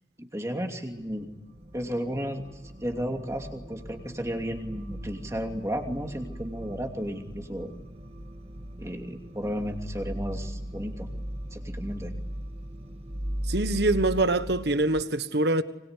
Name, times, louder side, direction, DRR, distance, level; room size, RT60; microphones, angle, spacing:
voice 1, 0.2-1.3 1.7-2.4 2.8-7.7 8.8-11.1 11.5-12.1, equal, 15° right, 2.7 m, -33 dB
sound 1, 1.0-15.0, equal, 35° right, 1.7 m, -38 dB
voice 2, 13.5-15.6, right 2 dB, 60° right, 1.4 m, -24 dB
25.0 x 24.5 x 9.8 m
head